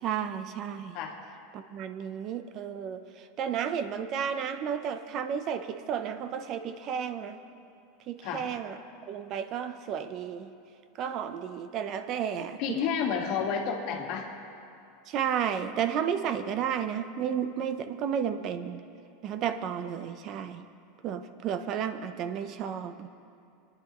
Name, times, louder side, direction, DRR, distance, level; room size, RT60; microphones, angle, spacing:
voice 1, 0.0-1.0 1.5-7.4 8.1-8.8 9.1-10.5 11.0-12.8 15.1-18.8 19.2-20.6 21.0-23.1, right 8 dB, 45° right, 10 dB, 0.7 m, -32 dB
voice 2, 12.6-14.3, left 6 dB, 60° left, 2 dB, 1.7 m, -30 dB
22.5 x 10.0 x 3.1 m, 2.6 s
supercardioid pair, 115°, 0 cm